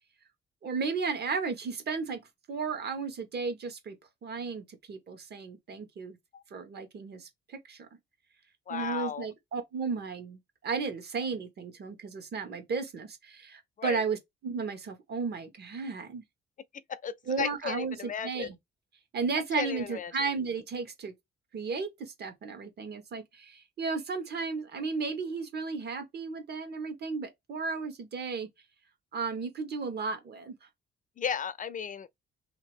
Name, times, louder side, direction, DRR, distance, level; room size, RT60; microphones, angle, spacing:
voice 1, 0.6-2.2 2.5-4.0 4.2-6.2 6.5-7.9 8.7-16.2 17.3-18.5 19.1-21.1 21.5-28.5 29.1-30.7, right 4 dB, 55° right, 1.3 m, -34 dB
voice 2, 8.7-9.3 13.8-14.0 16.9-18.5 19.5-20.1 31.2-32.1, left 7 dB, 40° left, 0.4 m, -35 dB
2.8 x 2.4 x 3.5 m
cardioid pair, 90°, 20 cm